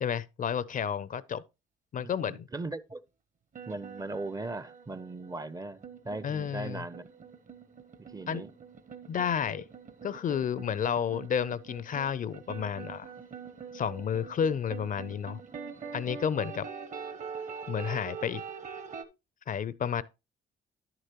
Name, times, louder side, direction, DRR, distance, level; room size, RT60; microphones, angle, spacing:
voice 1, 0.0-1.4 1.9-2.5 6.2-6.8 8.3-8.4 9.1-9.6 10.0-13.1 13.7-15.4 15.9-16.7 17.7-18.4 19.5-20.0, left 8 dB, 40° left, 0.4 m, -31 dB
voice 2, 2.0-3.0 3.7-7.1 8.0-8.5, right 2 dB, 20° right, 0.4 m, -39 dB
sound 1, 3.5-19.0, right 6 dB, 40° right, 0.8 m, -44 dB
10.5 x 6.7 x 2.9 m
cardioid pair, 90°, 20 cm